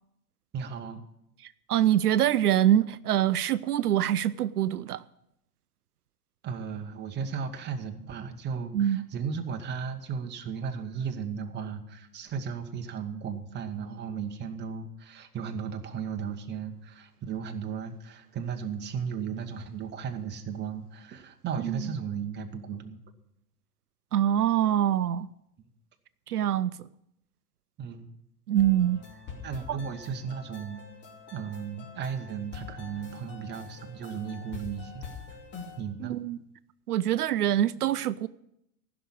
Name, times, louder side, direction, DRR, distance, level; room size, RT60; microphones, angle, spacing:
voice 1, 0.5-1.0 6.4-23.0 27.8-28.0 29.4-30.8 31.3-35.0 35.8-36.2, right 6 dB, 20° right, 1.2 m, -35 dB
voice 2, 1.4-5.0 8.7-9.0 21.6-21.9 24.1-25.3 26.3-26.9 28.5-29.0 29.7-29.8 36.0-36.4 36.9-38.3, right 11 dB, 75° right, 0.5 m, -25 dB
sound 1, 28.5-35.8, left 5 dB, 25° left, 2.7 m, -45 dB
15.0 x 6.1 x 8.6 m
figure-of-eight pair, 95°, 46 cm